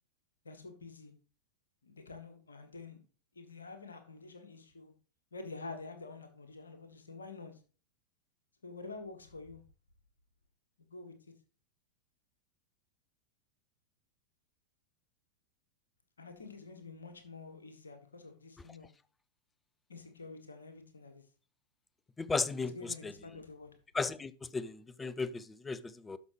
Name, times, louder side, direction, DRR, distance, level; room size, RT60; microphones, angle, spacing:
voice 1, 0.4-1.1 1.8-3.0 3.3-4.9 5.3-7.6 8.6-9.6 10.8-11.1 16.2-18.9 19.9-21.2 22.6-23.7, left 3 dB, 75° left, 1.4 m, -48 dB
voice 2, 22.2-23.1 23.9-26.2, left 4 dB, 15° left, 0.5 m, -35 dB
12.0 x 5.6 x 3.1 m
figure-of-eight pair, 90°, 0 cm